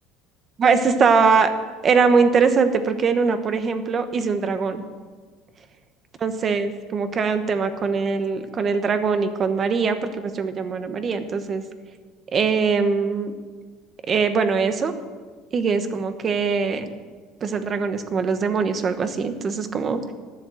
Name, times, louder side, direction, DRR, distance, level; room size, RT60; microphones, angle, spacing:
voice 1, 0.6-1.5 1.8-4.8 6.2-11.6 12.3-13.3 14.1-14.9 15.5-16.9 17.4-20.1, right 5 dB, 25° right, 9 dB, 1.1 m, -22 dB
13.0 x 12.0 x 7.7 m, 1.5 s
cardioid pair, 165°, 0 cm